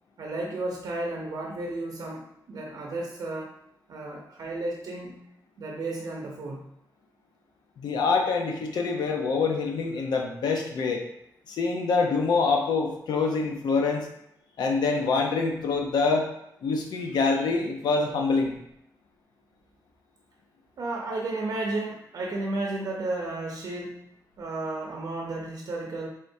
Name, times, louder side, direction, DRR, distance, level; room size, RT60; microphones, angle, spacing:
voice 1, 0.2-3.5 3.9-5.2 5.6-6.7 20.8-24.1 24.4-26.1, right 2 dB, 65° right, -1 dB, 0.6 m, -33 dB
voice 2, 7.8-11.0 11.5-14.1 14.6-16.3 16.6-18.6, left 4 dB, 90° left, 2 dB, 0.7 m, -25 dB
4.3 x 3.5 x 2.7 m, 0.77 s
wide cardioid pair, 130°, 7 cm